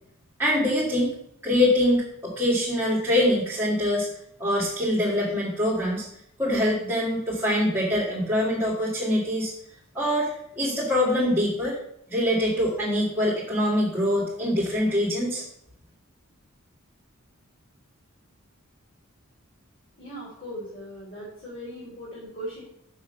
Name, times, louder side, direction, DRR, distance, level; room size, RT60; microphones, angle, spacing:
voice 1, 0.4-1.1 1.4-4.1 4.4-6.1 6.4-9.5 9.9-10.3 10.6-11.8 12.1-15.4, left 1 dB, 10° right, -7 dB, 2.0 m, -24 dB
voice 2, 20.0-22.6, equal, 40° left, -8 dB, 3.5 m, -38 dB
6.7 x 6.5 x 5.5 m, 0.74 s
head